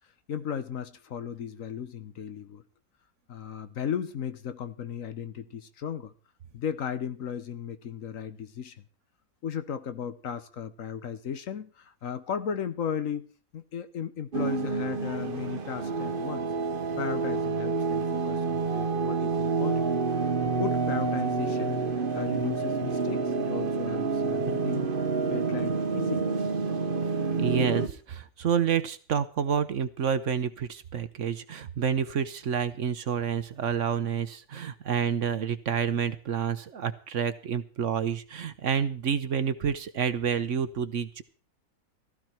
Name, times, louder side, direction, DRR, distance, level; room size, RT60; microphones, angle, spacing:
voice 1, 0.3-2.6 3.3-6.1 6.5-8.8 9.4-16.5 17.0-19.9 20.4-21.8 22.1-24.9 25.3-26.3, left 8 dB, 65° left, 1.3 m, -35 dB
sound 1, 14.3-27.9, right 4 dB, 40° right, 1.1 m, -28 dB
voice 2, 27.4-41.2, right 7 dB, 60° right, 1.1 m, -29 dB
15.5 x 13.5 x 4.5 m
omnidirectional pair, 1.6 m